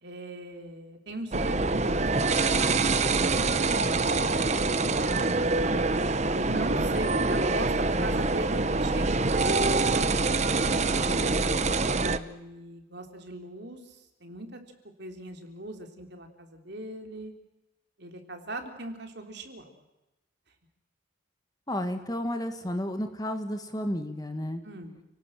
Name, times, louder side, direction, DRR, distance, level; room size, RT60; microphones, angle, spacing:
voice 1, 0.0-3.2 3.5-5.4 6.3-7.7 8.0-11.4 12.0-14.6 15.0-17.3 18.0-19.8 24.6-25.1, right 1 dB, 55° right, 5 dB, 3.5 m, -40 dB
sound 1, 1.3-12.2, right 3 dB, 35° right, 0.9 m, -25 dB
voice 2, 21.7-24.6, left 1 dB, 20° left, 7 dB, 1.7 m, -32 dB
30.0 x 18.5 x 7.6 m, 1.0 s
head